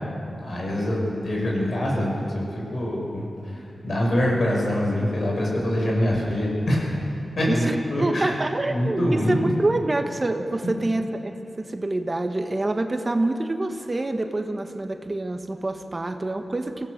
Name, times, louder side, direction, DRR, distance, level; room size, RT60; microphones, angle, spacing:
voice 1, 0.4-3.5 3.8-6.9 7.4-8.3 8.7-9.3, left 1 dB, 65° left, -2 dB, 6.5 m, -24 dB
voice 2, 7.5-16.9, right 2 dB, 35° right, 6 dB, 1.3 m, -26 dB
24.5 x 16.5 x 6.7 m, 2.8 s
cardioid pair, 60°, 0 cm